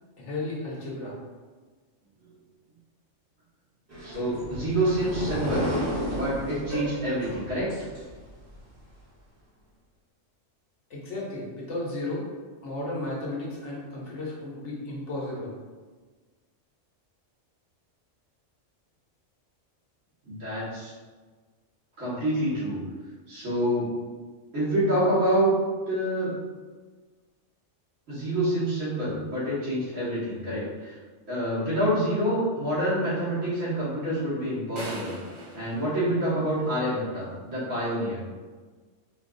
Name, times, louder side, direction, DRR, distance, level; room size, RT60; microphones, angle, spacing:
voice 1, 0.2-1.2 10.9-12.3 12.6-15.5, left 2 dB, 65° left, -5 dB, 1.2 m, -34 dB
sound 1, 3.9-8.6, equal, 15° right, 0.9 m, -33 dB
voice 2, 4.0-5.7 6.1-7.7 20.2-20.9 22.0-22.8 23.3-23.9 24.5-25.5 25.9-26.3 28.1-31.0 31.3-35.1 35.5-38.2, right 1 dB, 75° right, -11 dB, 1.9 m, -27 dB
sound 2, 34.8-36.9, right 1 dB, 35° right, 0.5 m, -41 dB
4.4 x 2.3 x 2.5 m, 1.4 s
omnidirectional pair, 1.3 m